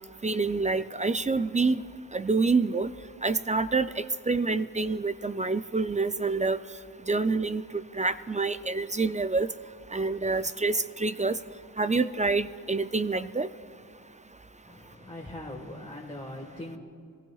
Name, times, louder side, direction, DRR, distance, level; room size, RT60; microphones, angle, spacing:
voice 1, 0.2-1.8 2.1-2.9 3.2-6.6 7.1-9.5 9.9-11.4 11.8-13.5, right 3 dB, 20° right, 12 dB, 0.3 m, -27 dB
voice 2, 14.6-16.8, left 1 dB, 15° left, -3 dB, 1.5 m, -41 dB
24.0 x 15.5 x 2.4 m, 2.4 s
wide cardioid pair, 70°, 35 cm